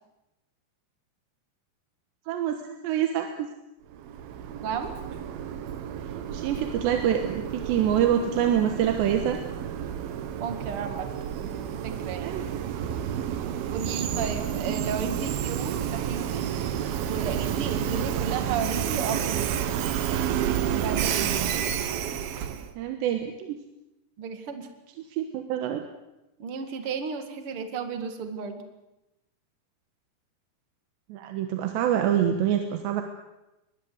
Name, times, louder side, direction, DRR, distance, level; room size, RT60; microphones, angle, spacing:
voice 1, 2.3-3.5 6.3-9.4 12.2-12.5 21.2-21.5 22.8-23.6 25.1-25.8 31.1-33.0, right 9 dB, 90° right, 5 dB, 3.5 m, -26 dB
Train, 3.9-22.7, right 9 dB, 70° right, 2.8 m, -30 dB
voice 2, 10.4-11.1 11.4-12.3 13.7-16.4 17.0-19.8 20.8-21.4 24.2-24.7 26.4-28.6, right 6 dB, 40° right, 7 dB, 2.3 m, -33 dB
23.5 x 19.5 x 7.9 m, 0.95 s
omnidirectional pair, 4.8 m